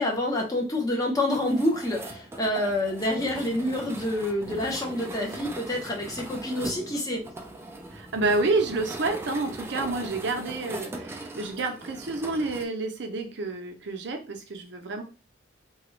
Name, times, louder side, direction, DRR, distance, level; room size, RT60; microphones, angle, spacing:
voice 1, 0.0-7.2, left 1 dB, 20° left, -1 dB, 0.8 m, -27 dB
sound 1, 1.3-12.7, right 2 dB, 15° right, 0.3 m, -40 dB
voice 2, 7.9-15.0, right 3 dB, 65° right, 4 dB, 0.6 m, -29 dB
2.9 x 2.3 x 3.1 m, 0.32 s
head